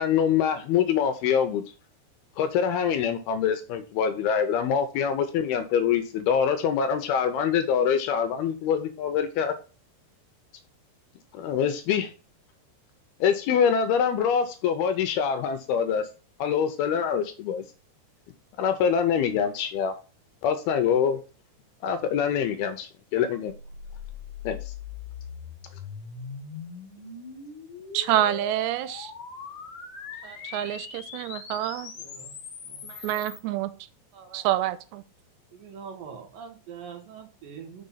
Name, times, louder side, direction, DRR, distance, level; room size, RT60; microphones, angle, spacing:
voice 1, 0.0-1.6 2.4-9.5 11.3-12.1 13.2-16.1 16.4-17.6 18.6-19.9 20.4-21.2 21.8-23.5 24.4-24.6, left 7 dB, 75° left, 2.4 m, -24 dB
sound 1, 23.5-33.4, left 6 dB, 55° left, 2.3 m, -41 dB
voice 2, 27.9-29.1 30.4-31.9 33.0-33.7 34.3-35.0, right 13 dB, 85° right, 2.8 m, -27 dB
voice 3, 30.0-30.5 32.0-32.4 32.7-33.1 34.1-34.5 35.5-37.9, right 7 dB, 65° right, 2.6 m, -44 dB
6.9 x 5.4 x 5.5 m
omnidirectional pair, 5.0 m